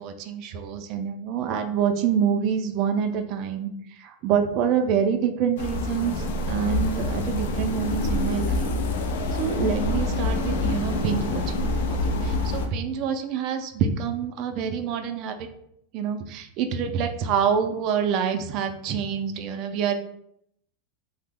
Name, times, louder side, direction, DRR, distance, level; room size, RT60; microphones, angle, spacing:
voice 1, 0.0-3.7 4.0-6.2 6.5-8.7 9.3-11.4 11.9-15.4 15.9-20.0, right 7 dB, 50° right, 6 dB, 0.3 m, -26 dB
sound 1, 5.6-12.7, left 2 dB, 75° left, 0.4 m, -26 dB
2.8 x 2.0 x 3.5 m, 0.72 s
supercardioid pair, 125°, 0 cm